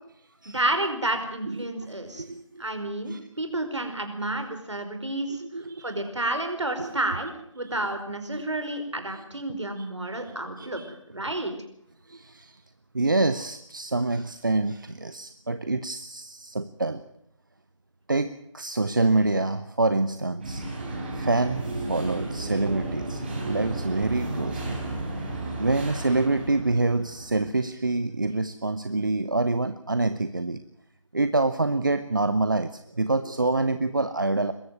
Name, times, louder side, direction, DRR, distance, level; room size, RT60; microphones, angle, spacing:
voice 1, 0.4-2.2 2.6-5.4 5.8-10.8 11.1-11.5, right 1 dB, 65° right, 6 dB, 5.0 m, -30 dB
voice 2, 2.2-2.6 3.1-3.2 5.4-5.8 6.8-6.9 9.8-9.9 10.1-10.2 10.6-10.9 12.1-12.6 12.9-17.0 18.1-20.6 21.1-24.8 25.6-30.6 31.1-34.5, right 2 dB, 40° right, 12 dB, 0.8 m, -26 dB
sound 1, 20.4-27.5, right 2 dB, 20° right, 4.6 m, -33 dB
22.5 x 14.0 x 9.4 m, 0.72 s
figure-of-eight pair, 160°, 17 cm